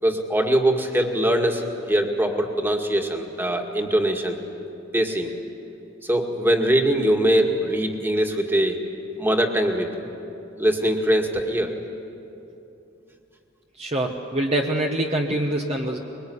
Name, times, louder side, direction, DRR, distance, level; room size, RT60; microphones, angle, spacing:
voice 1, 0.0-4.4 4.9-5.3 6.0-8.8 9.2-9.9 10.6-11.8, right 1 dB, 10° right, 2 dB, 2.1 m, -22 dB
voice 2, 13.8-16.0, right 1 dB, 30° right, 1 dB, 1.3 m, -24 dB
24.5 x 22.5 x 9.7 m, 2.8 s
head